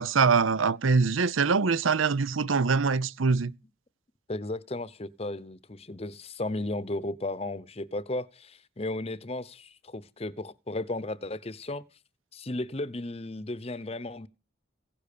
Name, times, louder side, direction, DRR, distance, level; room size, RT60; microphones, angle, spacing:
voice 1, 0.0-3.5, right 5 dB, 90° right, 0.7 m, -24 dB
voice 2, 4.3-11.8 12.3-14.3, left 2 dB, 30° left, 0.8 m, -35 dB
16.5 x 10.5 x 6.7 m
head